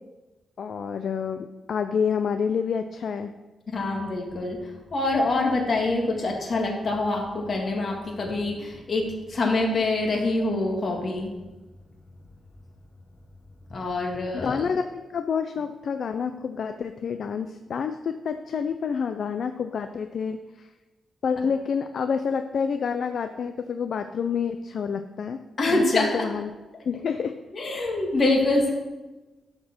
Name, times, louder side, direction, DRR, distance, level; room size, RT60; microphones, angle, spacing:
voice 1, 0.6-3.3 14.4-20.7 21.2-25.4 25.7-26.6 26.8-27.3, left 6 dB, 55° left, 8 dB, 0.4 m, -28 dB
voice 2, 3.7-11.3 13.7-14.7 25.6-26.3 27.5-28.7, left 2 dB, 40° left, 0 dB, 1.8 m, -25 dB
12.5 x 4.4 x 5.9 m, 1.2 s
wide cardioid pair, 150°, 0 cm